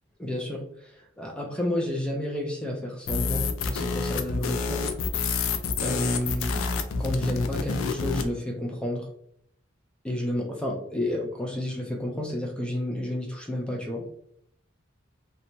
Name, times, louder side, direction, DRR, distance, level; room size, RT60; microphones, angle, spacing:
voice 1, 0.2-4.9 5.8-6.7 7.0-9.1 10.0-14.1, left 1 dB, 5° left, 0 dB, 0.3 m, -31 dB
sound 1, 3.1-8.3, left 4 dB, 80° left, 0.3 m, -28 dB
2.9 x 2.1 x 2.6 m, 0.68 s
head